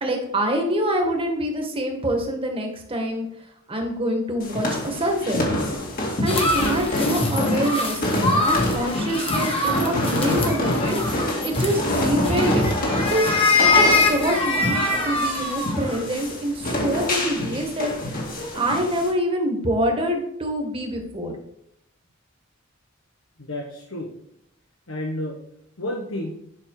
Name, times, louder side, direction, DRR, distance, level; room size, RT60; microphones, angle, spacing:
voice 1, 0.0-3.3 3.7-5.4 6.2-12.7 13.1-13.3 13.6-17.9 18.3-21.3, equal, 25° right, 2 dB, 1.8 m, -26 dB
sound 1, 4.4-19.1, left 1 dB, 45° left, 2.4 m, -26 dB
sound 2, 6.3-16.0, left 3 dB, 30° left, 1.6 m, -24 dB
voice 2, 23.4-24.2 24.9-25.4 25.8-26.4, left 1 dB, 85° left, 1 dB, 1.3 m, -31 dB
10.5 x 5.8 x 4.9 m, 0.77 s
head